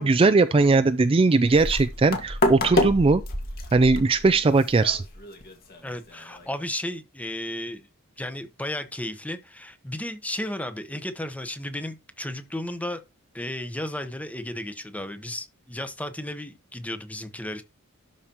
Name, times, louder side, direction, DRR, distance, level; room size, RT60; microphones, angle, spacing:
voice 1, 0.0-3.2 3.7-5.0, right 3 dB, 25° right, 0.4 m, -19 dB
sound 1, 1.4-6.5, left 1 dB, 45° left, 1.9 m, -29 dB
voice 2, 5.8-7.8 8.2-13.0 13.3-17.6, left 1 dB, 5° left, 1.0 m, -34 dB
12.0 x 5.1 x 3.0 m
head